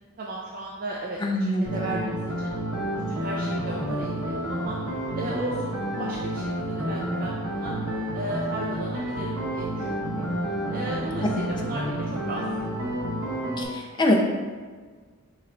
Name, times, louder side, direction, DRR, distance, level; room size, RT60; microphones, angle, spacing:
voice 1, 0.2-2.5 3.1-4.8 5.1-7.7 8.1-10.3 10.7-12.4 12.7-12.9, right 2 dB, 40° right, -4 dB, 0.4 m, -35 dB
voice 2, 1.2-2.1 11.2-11.4 13.6-14.2, left 1 dB, 20° left, 0 dB, 0.5 m, -24 dB
sound 1, 1.7-13.7, equal, 90° right, 1.0 m, -30 dB
4.5 x 3.1 x 3.7 m, 1.5 s
head